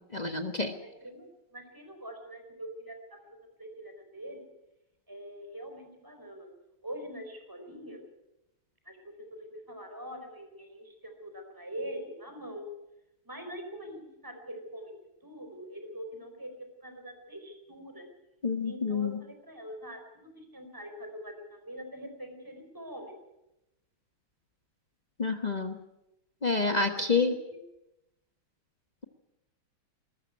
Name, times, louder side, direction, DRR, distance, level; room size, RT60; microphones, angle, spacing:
voice 1, 0.1-0.7 18.4-19.2 25.2-25.8 26.4-27.3, left 4 dB, 25° left, 6 dB, 1.0 m, -28 dB
voice 2, 0.8-2.9 3.6-4.5 5.1-6.5 6.8-8.0 8.8-12.6 13.2-14.9 15.2-18.1 18.6-23.2 26.9-27.6, equal, 10° right, 4 dB, 4.5 m, -44 dB
21.0 x 13.5 x 9.5 m, 0.90 s
omnidirectional pair, 2.3 m